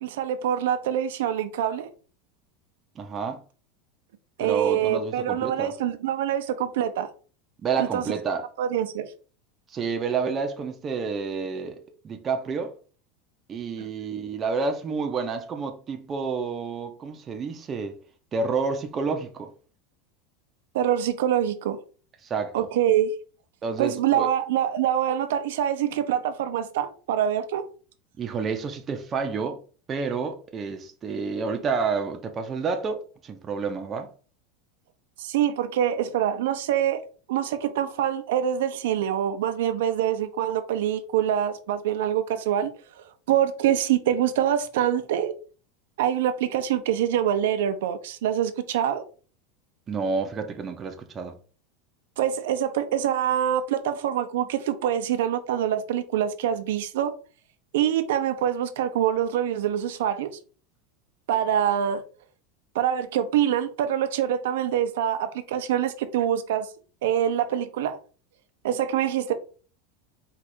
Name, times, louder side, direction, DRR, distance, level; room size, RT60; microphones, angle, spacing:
voice 1, 0.0-1.9 4.4-7.1 7.8-8.0 8.6-9.1 13.8-13.9 20.7-21.8 22.5-23.1 23.8-27.6 35.2-37.0 37.3-42.7 43.3-45.3 46.0-49.0 52.2-57.1 57.7-60.3 61.3-62.0 62.7-66.7 67.0-68.0 68.6-69.3, right 10 dB, 85° right, 0.6 m, -25 dB
voice 2, 3.0-3.4 4.4-5.7 7.6-8.4 9.7-11.8 12.0-12.7 13.5-18.0 18.3-19.5 22.2-22.7 23.6-24.3 28.2-29.6 29.9-34.1 49.9-51.4, right 5 dB, 20° right, 0.6 m, -29 dB
4.7 x 2.4 x 4.2 m
supercardioid pair, 160°, 0 cm